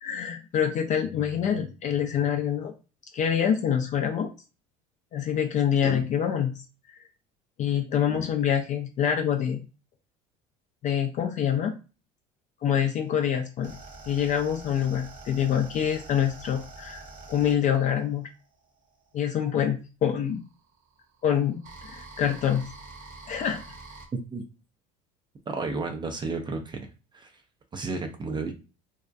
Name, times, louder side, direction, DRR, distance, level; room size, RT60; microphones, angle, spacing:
voice 1, 0.0-2.7 3.1-4.3 5.1-6.5 6.9-7.0 7.6-9.7 10.8-11.7 12.6-13.8 14.1-18.3 19.1-20.4 21.2-22.6 23.3-23.6, left 8 dB, 40° left, 5 dB, 0.4 m, -26 dB
sound 1, 13.1-19.3 20.2-24.1, right 3 dB, 45° right, 0.9 m, -46 dB
voice 2, 25.5-27.4 27.7-28.5, right 3 dB, 25° right, 5 dB, 0.4 m, -32 dB
2.6 x 2.1 x 2.3 m, 0.32 s
hypercardioid pair, 80°, 19 cm